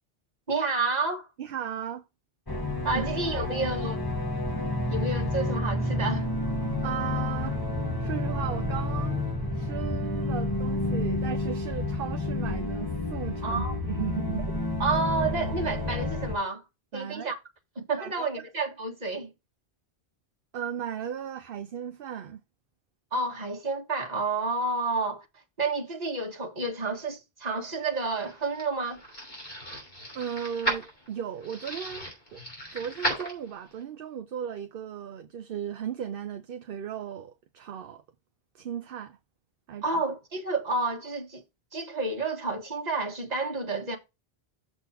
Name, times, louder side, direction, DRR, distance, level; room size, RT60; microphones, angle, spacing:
voice 1, 0.5-1.3 2.8-4.0 4.9-6.3 13.4-13.7 14.8-16.6 16.9-17.4 17.8-19.3 23.1-25.2 25.6-29.0 39.8-41.4 41.7-44.0, right 3 dB, 40° right, 1.7 m, -30 dB
voice 2, 1.4-2.0 2.9-3.0 3.3-3.7 6.8-7.6 8.0-9.2 9.5-14.5 16.9-17.3 18.0-18.4 20.5-22.4 30.1-32.4 32.7-38.0 38.5-39.2 39.7-39.8, right 9 dB, 65° right, 0.8 m, -36 dB
sound 1, 2.5-16.4, left 2 dB, 20° left, 1.1 m, -30 dB
sound 2, 27.9-33.8, right 1 dB, 60° left, 3.5 m, -35 dB
7.0 x 4.2 x 5.7 m
omnidirectional pair, 1.0 m